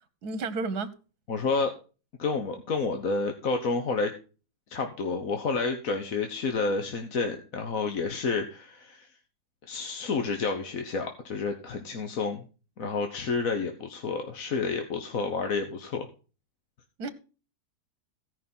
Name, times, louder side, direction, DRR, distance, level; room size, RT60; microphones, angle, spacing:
voice 1, 0.2-0.9 17.0-17.1, right 3 dB, 75° right, 1.7 m, -31 dB
voice 2, 1.3-1.7 2.2-4.1 4.7-9.1 9.7-12.4 12.8-16.1, left 4 dB, 60° left, 1.6 m, -30 dB
16.5 x 5.7 x 5.5 m
omnidirectional pair, 1.7 m